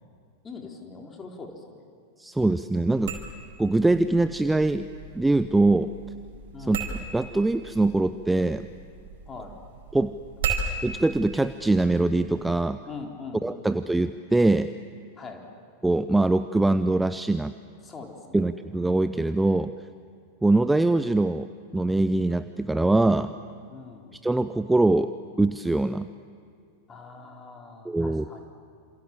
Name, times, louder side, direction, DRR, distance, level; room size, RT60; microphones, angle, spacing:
voice 1, 0.4-1.9 6.5-6.9 9.2-9.6 12.9-13.7 15.1-15.5 17.8-18.5 23.7-24.1 26.9-28.5, left 4 dB, 20° left, 2 dB, 4.0 m, -42 dB
voice 2, 2.2-3.1 3.6-4.9 5.2-5.9 6.7-6.8 7.1-8.7 9.9-10.1 10.8-12.8 13.4-14.7 15.8-17.5 18.3-19.7 20.4-21.5 21.7-23.3 24.2-25.1 25.4-26.1 27.9-28.2, right 2 dB, 5° right, 12 dB, 0.7 m, -23 dB
sound 1, 2.9-12.7, right 4 dB, 55° right, 4.7 m, -37 dB
28.0 x 27.5 x 7.7 m, 2.4 s
figure-of-eight pair, 90°, 0 cm